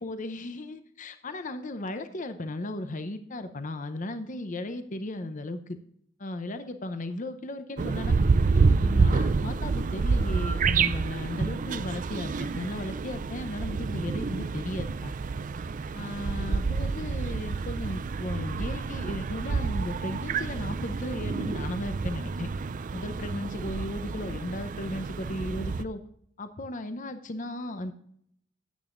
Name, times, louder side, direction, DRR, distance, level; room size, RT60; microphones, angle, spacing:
voice 1, 0.0-5.8 6.2-8.1 8.5-15.1 15.9-22.5 22.9-26.0 26.4-27.9, left 1 dB, 40° left, 9 dB, 0.7 m, -36 dB
sound 1, 7.8-25.8, right 4 dB, 40° right, 0.4 m, -28 dB
12.5 x 9.0 x 2.5 m, 0.68 s
head